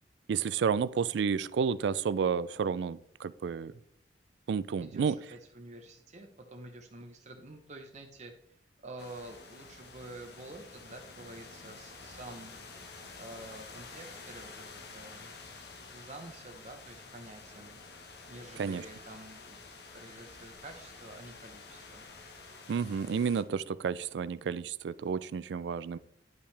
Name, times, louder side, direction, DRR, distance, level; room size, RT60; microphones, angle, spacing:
voice 1, 0.3-3.7 4.5-5.2 18.6-18.8 22.7-26.0, right 6 dB, 70° right, 17 dB, 0.3 m, -31 dB
voice 2, 4.8-12.5 13.2-15.3 15.9-22.1, right 2 dB, 40° right, 3 dB, 0.8 m, -49 dB
sound 1, 9.0-23.4, left 4 dB, 65° left, 1.1 m, -49 dB
10.5 x 5.6 x 3.3 m, 0.74 s
head